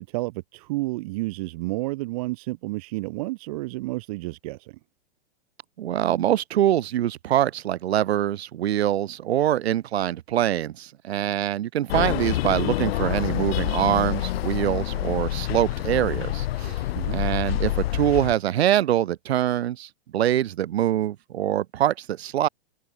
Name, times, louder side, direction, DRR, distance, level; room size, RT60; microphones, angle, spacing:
voice 1, 0.0-4.8 16.9-17.2, right 21 dB, 35° right, 1.2 m, -31 dB
voice 2, 5.8-16.8 17.1-22.5, right 12 dB, 80° right, 1.1 m, -24 dB
sound 1, 11.9-18.3, left 15 dB, 70° left, 0.5 m, -27 dB
supercardioid pair, 165°, 31 cm